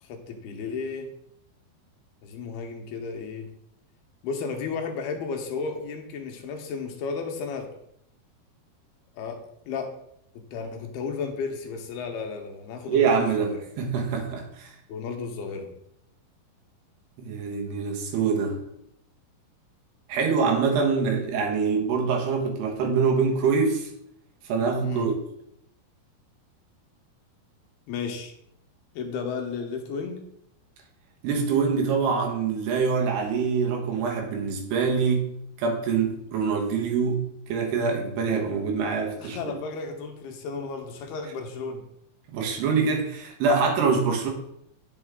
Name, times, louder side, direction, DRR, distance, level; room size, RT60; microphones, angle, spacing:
voice 1, 0.0-1.1 2.2-3.5 4.2-7.7 9.2-9.4 9.6-9.9 10.5-13.6 14.9-15.7 24.8-25.1 27.9-28.3 29.0-30.2 39.2-41.8, left 5 dB, 80° left, 4 dB, 3.0 m, -33 dB
voice 2, 12.9-14.7 17.2-18.6 20.1-23.9 24.5-25.1 31.2-35.3 35.6-39.6 42.3-44.3, right 5 dB, 85° right, 1 dB, 3.5 m, -25 dB
9.1 x 7.1 x 3.7 m, 0.76 s
omnidirectional pair, 4.6 m